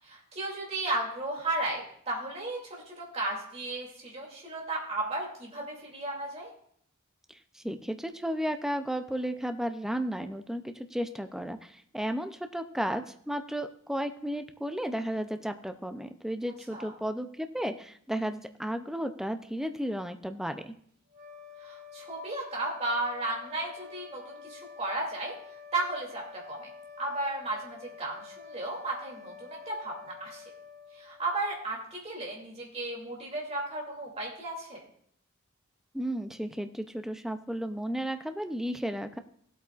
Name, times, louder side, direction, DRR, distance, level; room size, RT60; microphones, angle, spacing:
voice 1, 0.0-6.5 16.7-16.9 21.6-25.3 25.7-26.7 27.0-30.4 30.9-34.8, right 2 dB, 30° right, -2 dB, 2.6 m, -34 dB
voice 2, 7.3-20.7 35.9-39.2, equal, ahead, 7 dB, 0.4 m, -33 dB
sound 1, 21.1-31.7, left 6 dB, 50° right, 2.7 m, -49 dB
17.0 x 8.2 x 2.4 m, 0.65 s
head